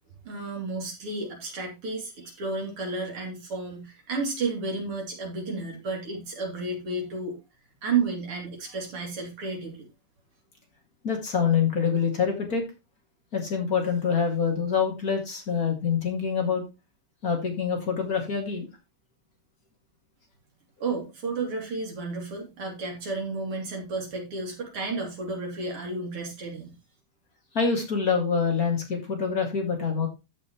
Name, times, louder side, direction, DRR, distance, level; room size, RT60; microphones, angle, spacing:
voice 1, 0.2-7.4 7.8-9.9 20.8-26.8, right 3 dB, 85° right, 1 dB, 4.0 m, -32 dB
voice 2, 11.0-12.6 13.3-16.6 17.2-18.7 27.5-30.1, left 6 dB, 40° left, 2 dB, 2.7 m, -25 dB
14.0 x 6.0 x 3.1 m, 0.25 s
omnidirectional pair, 2.4 m